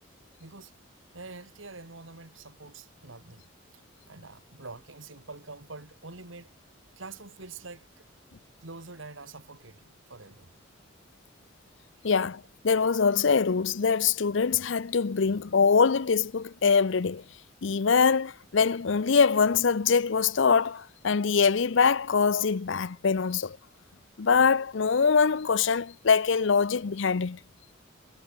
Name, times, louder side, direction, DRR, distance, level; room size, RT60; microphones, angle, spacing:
voice 1, 0.4-0.7 1.1-3.5 4.1-6.5 7.0-8.1 8.6-10.5 12.0-12.1, right 3 dB, 70° right, 2.4 m, -45 dB
voice 2, 12.0-17.2 17.6-23.6 24.2-27.4, left 5 dB, 65° left, 0.6 m, -23 dB
head